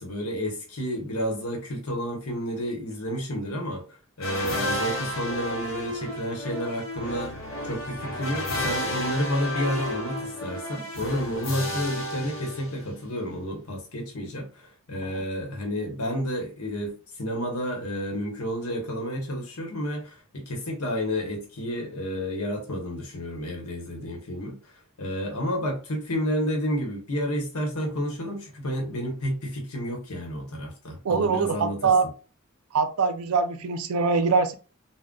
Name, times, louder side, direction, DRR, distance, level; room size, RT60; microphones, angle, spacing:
voice 1, 0.0-3.8 4.2-7.3 7.7-24.6 25.0-31.9, equal, 85° left, 1.0 m, -30 dB
sound 1, 4.2-13.1, left 1 dB, 60° left, 0.9 m, -32 dB
voice 2, 31.0-32.1 32.7-34.5, right 5 dB, 80° right, 0.4 m, -23 dB
3.7 x 2.1 x 2.2 m
head